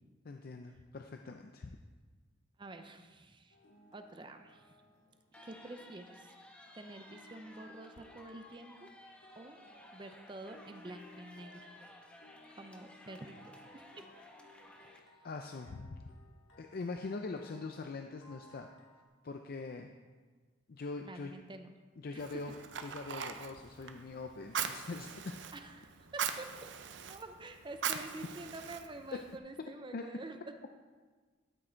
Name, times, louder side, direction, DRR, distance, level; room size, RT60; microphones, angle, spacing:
voice 1, 0.2-1.8 15.2-16.1 16.6-18.7 19.2-19.9 20.7-21.3 22.0-25.3 29.9-30.0, left 3 dB, 50° left, 4 dB, 0.5 m, -43 dB
voice 2, 2.6-3.6 3.9-4.8 5.4-6.3 6.7-8.9 9.4-9.6 9.9-11.7 12.5-13.4 13.7-14.1 14.8-15.0 21.1-21.7 22.1-22.6 25.5-26.5 27.1-30.5, right 2 dB, 25° right, 7 dB, 0.6 m, -48 dB
sound 1, 3.5-19.1, left 1 dB, 70° left, 1.8 m, -61 dB
sound 2, 5.3-15.0, left 1 dB, 5° left, 1.0 m, -56 dB
Fire, 22.2-29.4, right 8 dB, 65° right, 0.6 m, -41 dB
12.5 x 6.3 x 4.5 m, 1.4 s
head